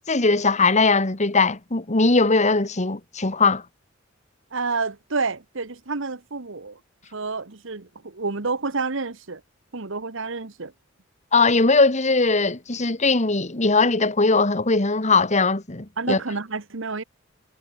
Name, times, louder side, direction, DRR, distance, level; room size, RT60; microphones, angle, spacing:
voice 1, 0.1-3.6 11.3-16.2, left 3 dB, 35° left, 1.9 m, -20 dB
voice 2, 4.5-6.8 7.1-9.4 9.7-10.7 16.0-17.0, right 4 dB, 70° right, 1.4 m, -29 dB
head